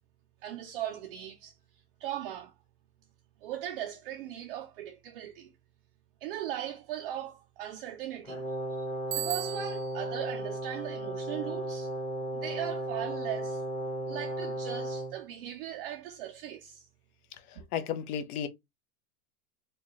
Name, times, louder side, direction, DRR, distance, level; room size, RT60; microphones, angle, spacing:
voice 1, 0.4-1.6 2.0-2.5 3.4-5.5 6.2-8.4 8.7-8.9 9.1-11.9 12.3-13.6 14.1-16.8, right 12 dB, 40° right, 0.4 m, -38 dB
Brass instrument, 8.2-15.2, right 1 dB, 10° left, 0.9 m, -35 dB
Bicycle bell, 9.1-10.1, right 13 dB, 85° right, 1.0 m, -36 dB
voice 2, 17.5-18.5, left 8 dB, 65° left, 0.8 m, -34 dB
4.6 x 2.3 x 2.9 m
supercardioid pair, 160°, 47 cm